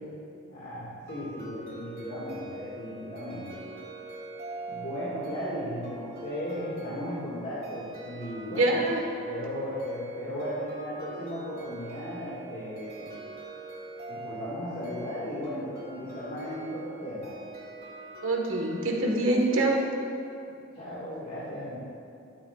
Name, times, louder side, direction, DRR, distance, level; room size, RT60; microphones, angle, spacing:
voice 1, 0.5-3.6 4.7-8.8 9.3-13.3 14.1-17.3 20.5-21.8, equal, 50° left, -10 dB, 1.8 m, -36 dB
sound 1, 1.1-20.3, right 2 dB, 50° right, 1.8 m, -44 dB
voice 2, 8.5-9.0 18.2-19.8, right 2 dB, 75° right, 0 dB, 1.4 m, -25 dB
11.5 x 10.0 x 2.4 m, 2.7 s
head